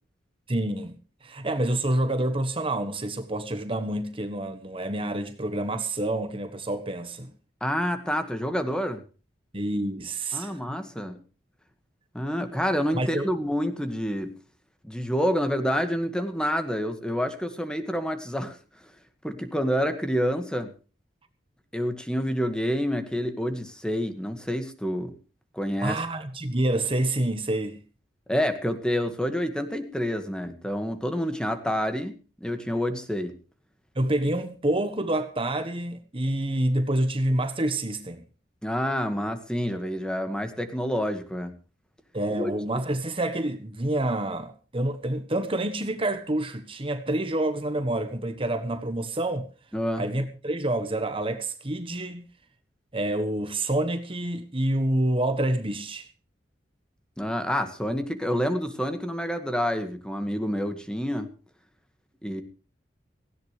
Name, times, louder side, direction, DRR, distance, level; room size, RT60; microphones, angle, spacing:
voice 1, 0.5-7.3 9.5-10.6 12.9-13.3 25.8-27.8 33.9-38.2 42.1-49.5 50.0-52.3 52.9-56.1, right 1 dB, 30° right, 1.3 m, -28 dB
voice 2, 7.6-9.0 10.3-11.2 12.1-14.3 14.8-18.6 19.2-20.7 21.7-25.1 25.5-26.0 28.3-33.3 38.6-41.5 42.4-42.5 49.7-50.0 57.2-61.3 62.2-62.4, equal, 5° left, 1.8 m, -28 dB
18.0 x 16.5 x 3.3 m
head